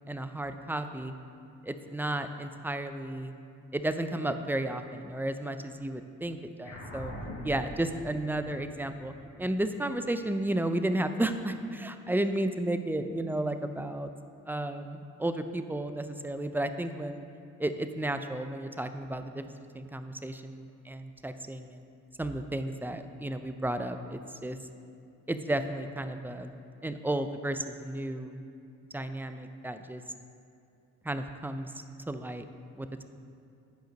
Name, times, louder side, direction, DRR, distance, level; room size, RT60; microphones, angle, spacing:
voice 1, 0.1-1.1 1.6-3.3 3.7-7.1 7.4-9.1 9.4-14.1 14.5-17.2 17.6-21.8 22.2-24.6 25.3-26.5 26.8-28.3 28.9-30.0 31.0-31.7 32.1-32.5 32.8-33.0, right 1 dB, 5° right, 9 dB, 0.4 m, -33 dB
sound 1, 6.6-11.4, equal, 65° left, 1.7 m, -44 dB
9.1 x 5.1 x 5.2 m, 2.5 s
cardioid pair, 90°, 30 cm